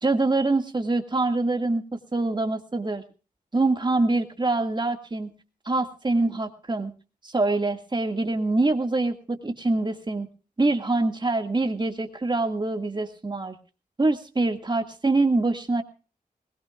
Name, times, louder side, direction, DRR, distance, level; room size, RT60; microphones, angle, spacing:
voice 1, 0.0-3.0 3.5-5.3 5.7-6.9 7.2-10.3 10.6-13.6 14.0-15.8, right 2 dB, 30° right, 6 dB, 2.1 m, -25 dB
21.0 x 20.0 x 2.5 m, 0.36 s
wide cardioid pair, 85°, 15 cm